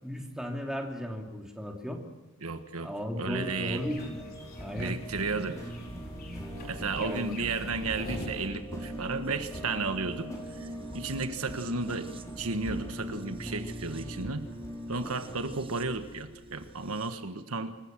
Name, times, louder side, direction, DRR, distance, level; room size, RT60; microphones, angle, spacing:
voice 1, 0.0-2.0 2.8-4.2 4.6-4.9 7.0-7.4, equal, 5° right, 2 dB, 2.7 m, -35 dB
voice 2, 2.4-3.8 4.7-5.7 6.6-10.3 10.6-10.7 10.9-12.1 12.4-14.4 14.9-17.8, right 3 dB, 80° right, 9 dB, 1.5 m, -33 dB
sound 1, 3.3-15.4, equal, 15° left, 4.8 m, -43 dB
sound 2, 3.5-8.5, left 1 dB, 45° left, 4.2 m, -45 dB
sound 3, 5.1-17.1, right 1 dB, 25° right, 0.9 m, -43 dB
26.0 x 15.0 x 7.5 m, 1.2 s
head